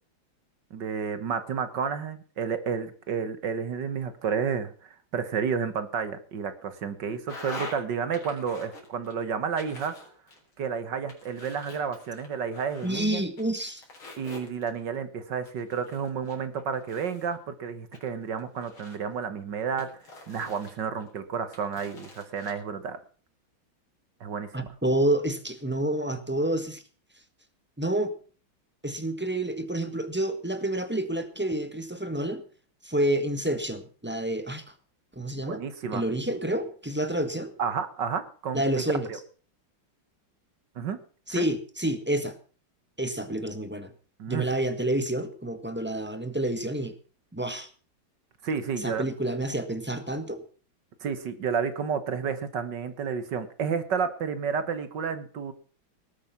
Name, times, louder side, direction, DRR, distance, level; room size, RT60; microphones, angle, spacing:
voice 1, 0.7-4.7 5.1-9.9 10.6-13.2 14.2-19.9 20.3-23.0 24.2-24.5 35.5-36.0 37.6-38.6 39.1-39.2 40.8-41.0 41.3-41.5 44.2-44.5 48.4-49.1 51.0-55.5, right 6 dB, 60° right, 11 dB, 1.9 m, -31 dB
sound 1, 7.3-7.8 8.1-9.1 9.6-10.7 11.1-13.0 13.4-14.9 15.4-17.3 17.9-19.2 19.8-21.1 21.5-22.5, left 3 dB, 90° left, 4.8 m, -45 dB
voice 2, 12.8-13.8 24.5-26.8 27.8-28.1 28.8-32.4 32.8-34.7 35.1-35.6 35.9-37.5 38.5-39.1 41.3-42.4 43.0-43.9 44.3-46.9 47.3-47.7 48.8-50.4, right 1 dB, 5° right, 9 dB, 1.2 m, -29 dB
19.0 x 8.5 x 5.8 m, 0.40 s
omnidirectional pair, 2.2 m